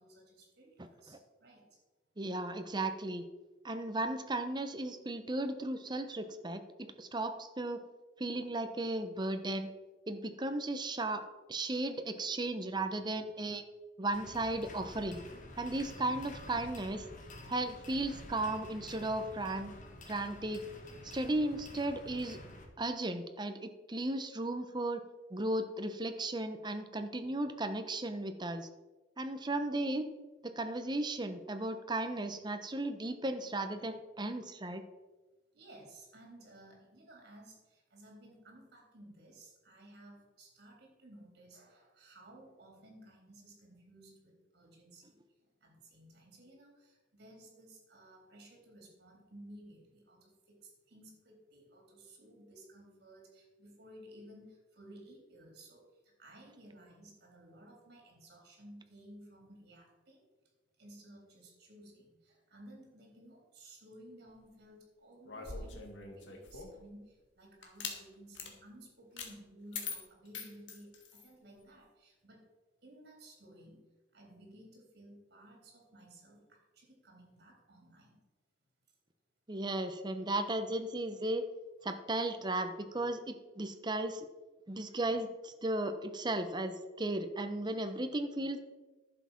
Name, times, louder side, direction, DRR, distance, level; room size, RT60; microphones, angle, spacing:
voice 1, 0.0-1.8 35.5-45.2 45.6-60.2 60.8-72.5 72.8-73.8 74.1-78.2, right 1 dB, 60° right, 0 dB, 3.7 m, -56 dB
voice 2, 2.2-3.2 3.6-7.8 8.2-9.7 10.1-13.6 14.0-15.2 15.6-17.0 17.5-19.7 20.1-20.6 21.0-22.4 22.8-25.0 25.3-28.7 29.2-30.1 30.4-34.8 79.5-81.4 81.8-84.3 84.7-88.6, right 2 dB, 25° right, 8 dB, 0.9 m, -35 dB
sound 1, 14.1-22.7, left 1 dB, 45° left, 1.7 m, -50 dB
sound 2, 65.2-66.8 67.6-68.0 68.3-68.5 69.2-69.3 69.7-71.3, left 5 dB, 75° left, 1.9 m, -43 dB
11.0 x 7.4 x 5.8 m, 1.2 s
head